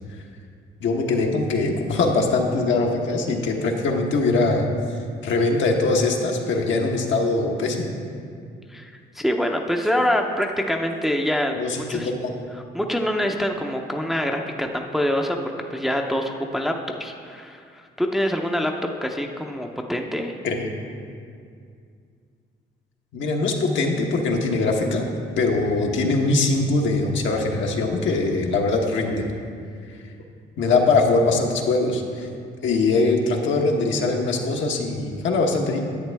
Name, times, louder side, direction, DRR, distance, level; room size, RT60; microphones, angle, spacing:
voice 1, 0.8-4.7 5.2-7.9 11.6-12.3 20.4-20.7 23.1-25.0 25.4-29.2 30.6-32.3 32.6-35.8, left 3 dB, 70° left, 1 dB, 1.2 m, -22 dB
voice 2, 8.7-11.6 11.9-12.1 12.7-16.7 17.0-18.7 19.0-20.3, equal, ahead, 2 dB, 0.6 m, -25 dB
10.5 x 8.2 x 3.4 m, 2.3 s
cardioid pair, 90°, 20 cm